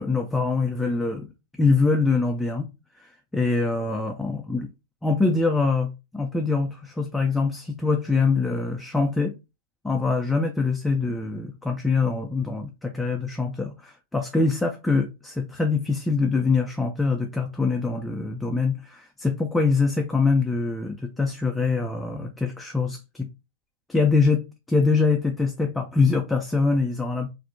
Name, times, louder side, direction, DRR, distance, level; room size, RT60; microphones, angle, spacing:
voice 1, 0.0-2.7 3.0-4.7 5.0-9.3 9.8-23.3 23.9-27.3, left 4 dB, 5° left, 0.4 m, -24 dB
2.5 x 2.0 x 2.6 m
hypercardioid pair, 100°, 0 cm